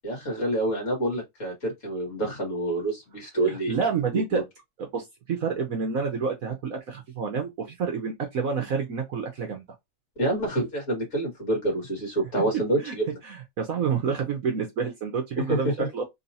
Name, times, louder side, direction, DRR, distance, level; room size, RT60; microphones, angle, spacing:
voice 1, 0.0-3.7 4.3-4.4 10.2-13.2 15.4-15.9, right 1 dB, 45° left, 2.2 m, -27 dB
voice 2, 3.4-4.4 4.8-9.6 12.8-12.9 13.2-16.0, right 5 dB, 60° right, 1.1 m, -29 dB
3.9 x 2.8 x 2.7 m
omnidirectional pair, 1.9 m